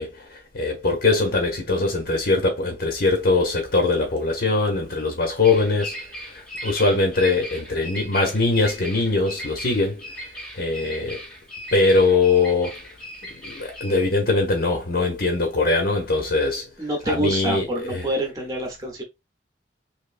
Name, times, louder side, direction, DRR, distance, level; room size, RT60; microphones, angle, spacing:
voice 1, 0.0-6.0 6.3-10.1 10.5-11.2 11.7-12.8 13.4-16.7 17.1-18.1, left 3 dB, 55° left, 0.9 m, -22 dB
Bird vocalization bird call bird song, 3.0-16.3, equal, 5° left, 0.9 m, -39 dB
voice 2, 16.8-19.0, right 1 dB, 20° right, 0.9 m, -26 dB
3.4 x 3.0 x 2.5 m
head